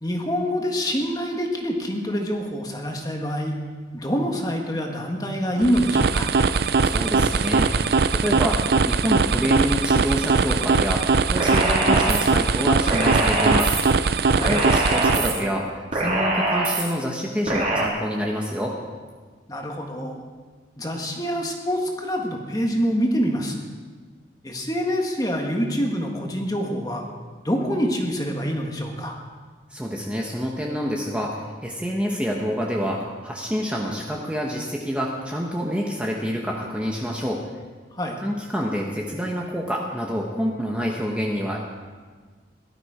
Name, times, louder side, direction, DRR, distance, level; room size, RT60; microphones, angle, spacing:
voice 1, 0.0-3.6 3.9-6.3 14.3-14.5 19.5-20.2 20.8-23.5 24.4-27.0 27.4-29.2 37.9-38.2, equal, 20° left, 2 dB, 1.6 m, -26 dB
sound 1, 5.6-15.5, right 4 dB, 55° right, 0.5 m, -21 dB
voice 2, 6.8-13.7 14.5-18.8 29.7-37.4 38.2-41.6, equal, 5° right, -1 dB, 1.1 m, -27 dB
sound 2, 11.4-12.2 12.9-13.8 14.4-15.3 15.9-16.8 17.5-17.9, right 2 dB, 35° right, 3.7 m, -23 dB
18.0 x 12.5 x 5.0 m, 1.5 s
head